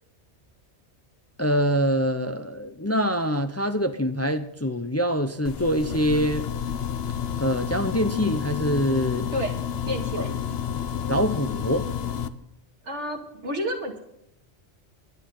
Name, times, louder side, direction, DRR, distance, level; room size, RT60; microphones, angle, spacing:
voice 1, 1.4-6.5 7.4-9.3 11.1-11.9, equal, 15° left, 8 dB, 0.6 m, -24 dB
sound 1, 5.4-12.3, left 8 dB, 65° left, 1.0 m, -30 dB
voice 2, 9.9-10.3 12.8-14.0, equal, 85° right, 2 dB, 2.6 m, -30 dB
21.0 x 10.5 x 3.9 m, 0.78 s
omnidirectional pair, 1.2 m